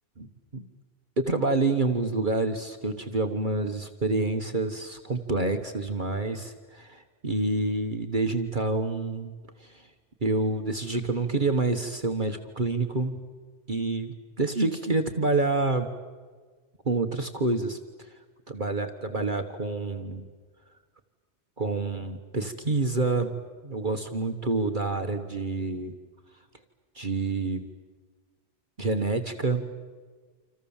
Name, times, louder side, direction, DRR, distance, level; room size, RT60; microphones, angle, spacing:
voice 1, 0.2-0.6 1.2-9.3 9.6-9.9 10.2-13.2 13.7-15.9 16.8-18.1 18.5-20.3 21.6-23.3 23.6-25.9 26.9-27.7 28.8-29.7, right 3 dB, 45° right, 6 dB, 1.5 m, -28 dB
28.5 x 27.5 x 7.3 m, 1.5 s
omnidirectional pair, 1.2 m